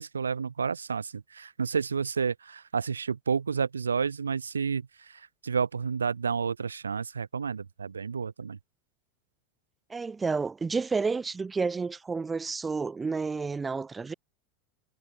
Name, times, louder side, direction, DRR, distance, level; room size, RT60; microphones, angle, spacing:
voice 1, 0.0-8.6, right 6 dB, 85° right, 2.8 m, -30 dB
voice 2, 9.9-14.1, right 4 dB, 15° right, 2.4 m, -30 dB
figure-of-eight pair, 85°, 0 cm